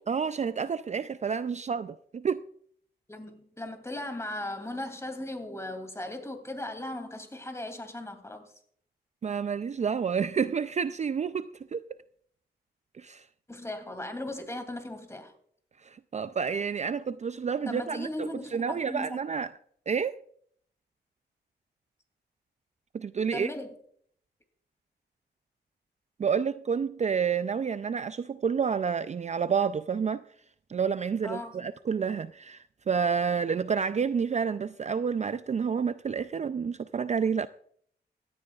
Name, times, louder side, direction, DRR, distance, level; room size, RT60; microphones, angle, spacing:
voice 1, 0.1-2.4 9.2-11.8 13.0-13.2 15.8-19.5 19.9-20.2 22.9-23.5 26.2-30.2 30.7-37.5, right 6 dB, 40° right, 0.4 m, -29 dB
voice 2, 3.1-8.4 13.5-15.3 17.7-19.2 23.3-23.7 31.2-31.6, left 1 dB, 15° left, 2.7 m, -37 dB
16.5 x 13.0 x 2.4 m
cardioid pair, 85°, 18 cm